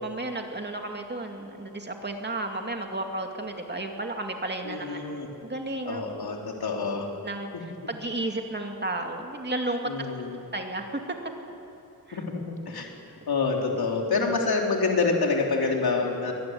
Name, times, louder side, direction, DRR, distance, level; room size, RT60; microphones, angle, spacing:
voice 1, 0.0-5.0 5.4-6.0 7.2-7.5 7.9-9.9 10.5-10.9 12.1-12.2, right 2 dB, 30° right, 3 dB, 2.5 m, -32 dB
voice 2, 4.6-5.3 5.9-7.1 7.8-7.9 9.8-10.4 12.1-12.9 13.3-16.3, left 4 dB, 90° left, 0 dB, 3.8 m, -27 dB
24.0 x 19.5 x 9.7 m, 2.8 s
wide cardioid pair, 130°, 36 cm